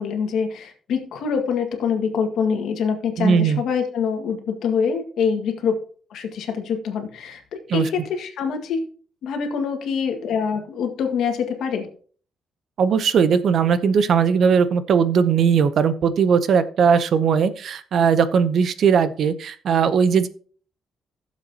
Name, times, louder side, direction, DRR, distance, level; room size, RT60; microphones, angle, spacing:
voice 1, 0.0-5.8 6.1-8.8 9.2-11.9, left 6 dB, 70° left, 5 dB, 1.8 m, -25 dB
voice 2, 3.2-3.6 7.7-7.9 12.8-20.3, right 6 dB, 50° right, 13 dB, 0.7 m, -18 dB
15.5 x 7.3 x 2.9 m, 0.43 s
cardioid pair, 165°, 0 cm